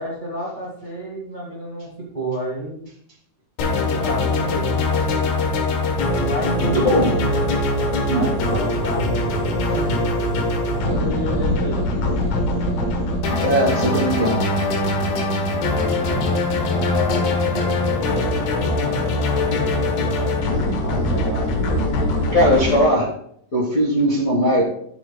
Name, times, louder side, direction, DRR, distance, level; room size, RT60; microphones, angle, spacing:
voice 1, 0.0-2.9 3.9-4.7 6.2-7.2 8.0-10.0 10.7-12.3 13.4-13.9 14.1-14.5 15.7-16.4 16.7-18.3 18.6-19.0 19.4-20.4 20.8-21.6, equal, 20° right, -4 dB, 1.3 m, -31 dB
sound 1, 3.6-22.8, left 2 dB, 85° left, 3.0 m, -22 dB
voice 2, 6.6-7.2 8.1-8.3 13.4-14.4 22.3-23.1 23.5-24.6, equal, 50° left, -2 dB, 1.0 m, -19 dB
12.5 x 7.6 x 2.3 m, 0.67 s
omnidirectional pair, 3.8 m